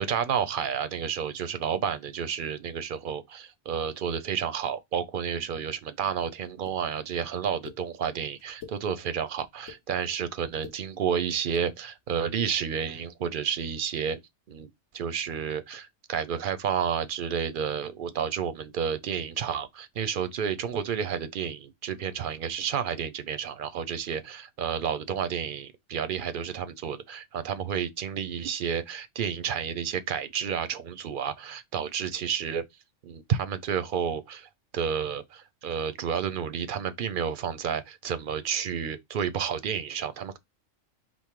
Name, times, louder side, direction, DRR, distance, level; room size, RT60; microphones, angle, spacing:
voice 1, 0.0-14.2 14.5-32.6 33.0-34.5 34.7-40.4, right 7 dB, 60° right, 0.6 m, -31 dB
sound 1, 6.7-6.8 7.6-7.8 8.4-8.8 9.4-9.8 10.5-10.8 11.4-11.7, left 8 dB, 70° left, 1.5 m, -44 dB
5.3 x 2.0 x 4.6 m
omnidirectional pair, 1.3 m